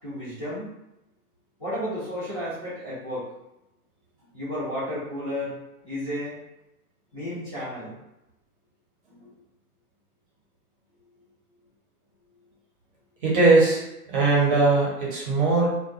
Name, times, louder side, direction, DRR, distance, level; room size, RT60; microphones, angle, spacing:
voice 1, 0.0-0.7 1.6-3.3 4.3-5.6 5.8-6.4 7.1-7.9 11.0-11.1, equal, 15° left, -16 dB, 0.6 m, -32 dB
voice 2, 13.2-13.8 14.1-15.7, right 3 dB, 35° right, -5 dB, 0.8 m, -20 dB
2.3 x 2.2 x 2.5 m, 0.91 s
hypercardioid pair, 145°, 46 cm